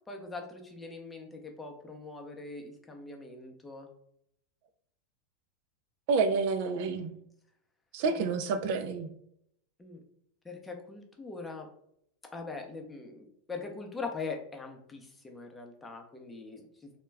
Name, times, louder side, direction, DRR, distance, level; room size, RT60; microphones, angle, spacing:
voice 1, 0.1-3.9 8.1-8.3 9.8-10.0 10.4-11.7 12.3-16.9, left 4 dB, 15° left, 3 dB, 0.6 m, -42 dB
voice 2, 6.1-7.1 7.9-9.1, right 4 dB, 60° right, 8 dB, 0.3 m, -29 dB
2.2 x 2.1 x 3.3 m, 0.71 s
hypercardioid pair, 110°, 0 cm